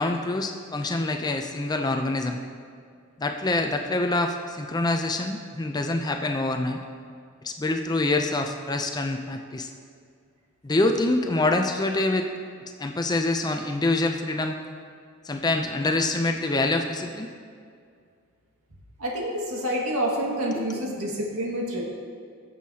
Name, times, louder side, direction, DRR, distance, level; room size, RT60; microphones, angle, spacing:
voice 1, 0.0-2.4 3.2-6.8 7.4-9.7 10.6-12.3 12.8-14.6 15.2-17.3 20.5-20.6, left 2 dB, 20° left, 5 dB, 0.4 m, -25 dB
voice 2, 19.0-21.8, right 1 dB, 75° right, -2 dB, 1.8 m, -28 dB
16.5 x 7.3 x 2.8 m, 2.2 s
head